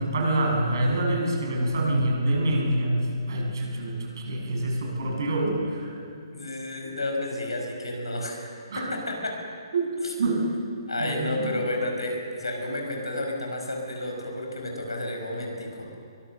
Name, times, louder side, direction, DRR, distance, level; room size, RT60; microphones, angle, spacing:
voice 1, 0.0-3.0 3.3-6.0 8.7-8.8 9.7-9.9 10.2-10.4 11.0-11.5, right 1 dB, 55° right, -1 dB, 7.1 m, -26 dB
voice 2, 6.3-9.4 10.0-10.1 10.9-15.9, left 1 dB, 75° left, 2 dB, 5.5 m, -31 dB
23.0 x 20.5 x 6.6 m, 2.3 s
figure-of-eight pair, 130°, 3 cm